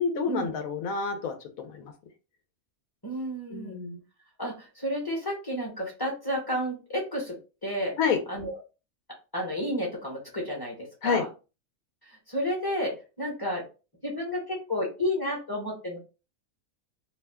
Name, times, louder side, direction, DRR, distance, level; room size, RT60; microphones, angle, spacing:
voice 1, 0.0-1.9 3.5-4.0 8.0-8.2 11.0-11.2, left 6 dB, 80° left, 6 dB, 1.0 m, -28 dB
voice 2, 3.0-3.8 4.4-7.4 7.6-7.9 8.3-8.5 9.3-11.2 12.0-13.6 14.0-16.0, equal, 20° left, -2 dB, 0.8 m, -31 dB
2.7 x 2.2 x 3.3 m, 0.32 s
omnidirectional pair, 1.5 m